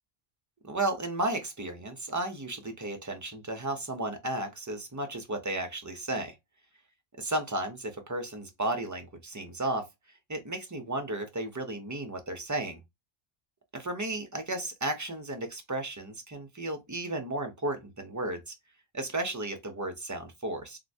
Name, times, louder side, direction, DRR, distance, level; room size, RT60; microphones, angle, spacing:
voice 1, 0.6-6.4 7.2-9.9 10.3-12.8 13.7-18.5 18.9-20.8, right 2 dB, 25° right, 0.4 m, -34 dB
3.1 x 2.8 x 2.6 m
omnidirectional pair, 1.1 m